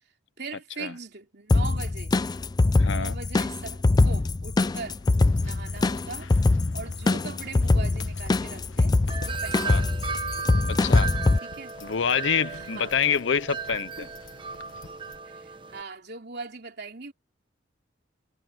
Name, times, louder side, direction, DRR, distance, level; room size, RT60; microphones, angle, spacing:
voice 1, 0.4-2.1 2.8-5.0 5.4-6.3 6.7-9.0 9.2-9.9 11.4-11.8 12.5-12.9 14.0-14.1 15.3-17.1, right 4 dB, 55° right, 3.3 m, -40 dB
sound 1, 1.5-11.4, left 2 dB, 20° left, 0.3 m, -23 dB
voice 2, 2.8-3.2 9.6-9.8 10.7-11.1 11.8-14.1, left 7 dB, 70° left, 0.7 m, -26 dB
sound 2, 5.0-15.2, left 3 dB, 85° left, 1.3 m, -48 dB
Wind chime, 9.1-15.8, right 6 dB, 25° right, 1.0 m, -36 dB
head